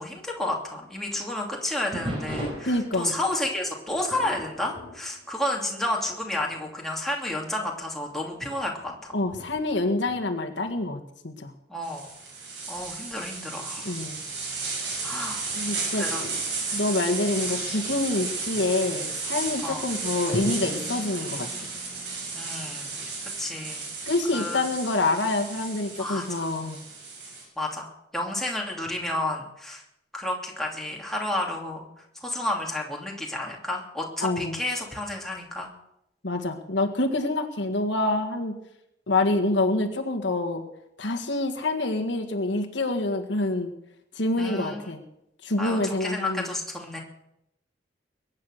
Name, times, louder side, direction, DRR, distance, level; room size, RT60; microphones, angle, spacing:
voice 1, 0.0-9.1 11.7-12.1 12.7-13.9 15.0-15.5 16.0-16.3 19.6-19.8 22.3-23.0 23.4-23.9 24.3-24.7 26.0-26.5 27.6-29.8 30.1-31.9 32.2-35.7 44.4-44.9 45.6-47.0, left 1 dB, ahead, -2 dB, 2.8 m, -31 dB
sound 1, 1.9-6.1 6.4-6.7 7.4-7.5 8.2-10.9 12.7-13.2, equal, 30° right, 4.3 m, -39 dB
voice 2, 2.6-3.2 9.1-11.5 13.9-14.2 15.5-16.4 16.7-21.5 24.1-26.8 34.2-34.6 36.2-38.6 39.1-40.6 41.0-43.7 44.2-45.0 45.4-46.5, left 2 dB, 75° left, 4 dB, 1.7 m, -27 dB
sound 2, 11.8-27.4, right 4 dB, 65° right, 7.1 m, -33 dB
Drum, 20.3-24.3, left 1 dB, 40° left, 1.8 m, -40 dB
22.0 x 9.6 x 6.6 m, 0.82 s
head